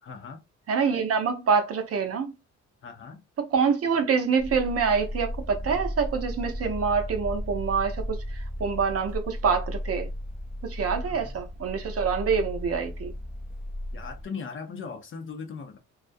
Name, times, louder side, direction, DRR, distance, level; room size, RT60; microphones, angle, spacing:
voice 1, 0.0-0.4 2.8-3.2 11.1-11.3 13.9-15.8, left 5 dB, 45° left, 0.6 m, -39 dB
voice 2, 0.7-2.3 3.4-10.1 10.6-13.1, right 5 dB, 50° right, 0.6 m, -26 dB
sound 1, 4.4-14.3, equal, 5° right, 0.4 m, -35 dB
2.3 x 2.1 x 2.5 m
cardioid pair, 90°, 30 cm